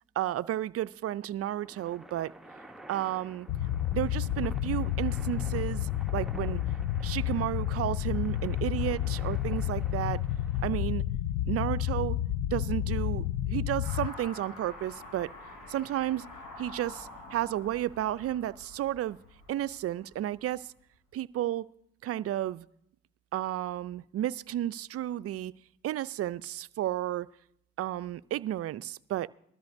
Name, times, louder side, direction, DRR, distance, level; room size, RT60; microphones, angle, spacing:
voice 1, 0.2-2.3 2.9-3.5 3.9-6.6 7.0-10.2 10.6-11.0 11.5-12.2 12.5-15.3 15.7-16.3 16.6-19.2 19.5-20.7 21.1-21.7 22.0-22.7 23.3-25.5 25.8-27.3 27.8-29.3, right 13 dB, 50° right, 0.4 m, -32 dB
sound 1, 1.5-10.6, right 1 dB, ahead, 0.9 m, -51 dB
sound 2, 3.5-14.1, left 12 dB, 65° left, 0.5 m, -30 dB
Car passing by / Accelerating revving vroom, 13.8-20.4, left 2 dB, 85° left, 5.3 m, -48 dB
20.5 x 13.0 x 2.6 m
supercardioid pair, 65°, 31 cm